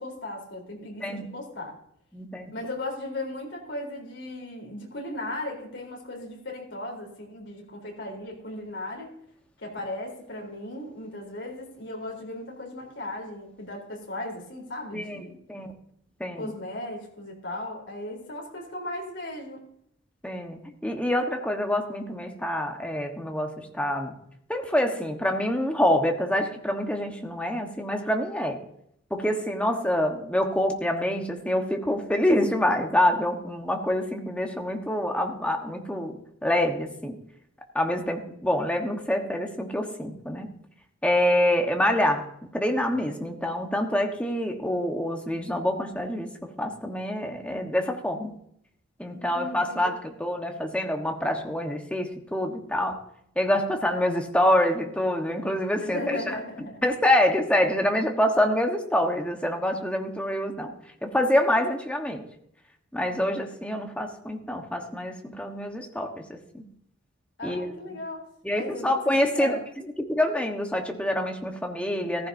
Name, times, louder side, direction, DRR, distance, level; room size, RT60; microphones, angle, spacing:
voice 1, 0.0-1.7 2.5-9.1 9.6-15.4 16.4-19.6 49.1-49.9 55.8-56.8 67.4-68.3 68.5-69.6, left 1 dB, 65° left, 1 dB, 3.7 m, -36 dB
voice 2, 2.1-2.5 14.9-15.7 16.2-16.5 20.2-24.1 24.5-28.6 29.1-37.2 37.7-40.5 41.0-48.3 49.0-53.0 53.4-56.4 56.8-60.8 61.0-62.2 62.9-66.7 67.4-68.0 68.4-69.6 70.1-72.3, left 1 dB, 5° left, 3 dB, 1.2 m, -26 dB
15.0 x 14.5 x 2.7 m, 0.72 s
head